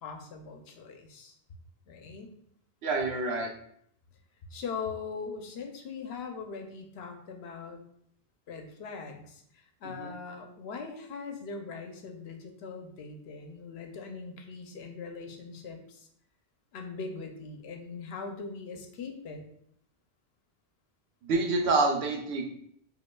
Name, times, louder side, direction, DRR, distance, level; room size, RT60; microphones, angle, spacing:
voice 1, 0.0-1.4 1.9-2.3 4.5-7.8 8.5-16.1 16.7-19.4, left 5 dB, 80° left, 4 dB, 0.9 m, -41 dB
voice 2, 2.8-3.5 10.0-10.1 21.2-22.4, right 3 dB, 85° right, 2 dB, 1.0 m, -27 dB
5.2 x 2.5 x 2.2 m, 0.68 s
omnidirectional pair, 1.0 m